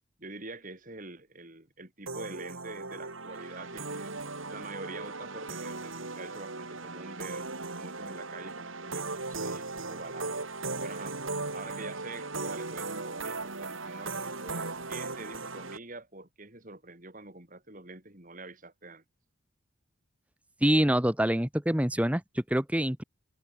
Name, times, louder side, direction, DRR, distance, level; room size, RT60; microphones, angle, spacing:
voice 1, 0.2-4.1 4.5-7.5 7.7-10.4 10.8-11.2 11.5-19.0, right 2 dB, 40° right, 3.3 m, -45 dB
sound 1, 2.1-15.8, right 3 dB, 75° right, 4.3 m, -37 dB
voice 2, 20.6-23.0, equal, 5° right, 1.1 m, -26 dB
head